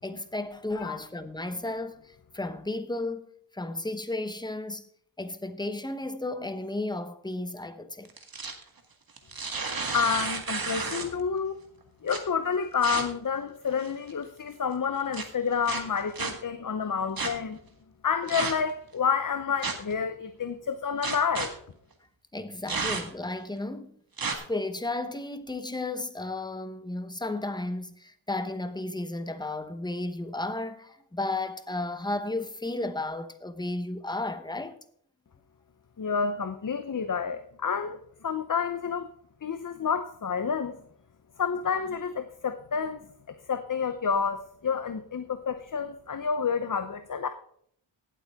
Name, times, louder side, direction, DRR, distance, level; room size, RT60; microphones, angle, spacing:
voice 1, 0.0-3.3 3.5-4.9 5.2-8.1 22.3-24.0 24.5-34.8, left 2 dB, 10° left, 0.9 m, -33 dB
sound 1, 8.0-8.6 9.2-11.2 12.1-12.2 12.8-13.0 13.7-14.1 15.1-15.2 15.6-16.3 17.2-17.3 18.3-18.7 19.6-19.9 21.0-21.5 22.7-23.2 24.2-24.3, right 4 dB, 50° right, 1.8 m, -31 dB
voice 2, 9.9-11.6 12.0-17.6 18.0-21.5 36.0-39.1 39.4-40.8 41.4-47.3, left 6 dB, 45° left, 0.8 m, -29 dB
17.5 x 8.3 x 3.6 m
wide cardioid pair, 100°, 47 cm